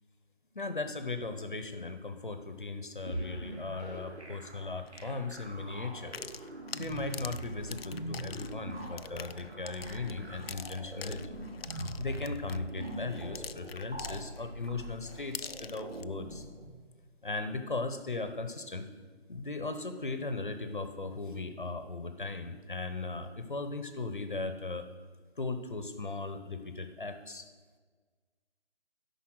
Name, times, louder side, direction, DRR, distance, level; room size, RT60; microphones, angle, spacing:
voice 1, 0.5-6.1 6.7-11.4 12.0-16.4 17.2-18.9 19.3-24.8 25.4-27.5, left 3 dB, 50° left, 9 dB, 0.9 m, -38 dB
sound 1, 3.1-16.7, right 1 dB, 85° right, 2.6 m, -42 dB
sound 2, 4.9-5.0 6.0-14.7 15.1-16.0, left 6 dB, 65° left, 0.4 m, -45 dB
12.5 x 5.5 x 6.2 m, 1.5 s
figure-of-eight pair, 180°, 33 cm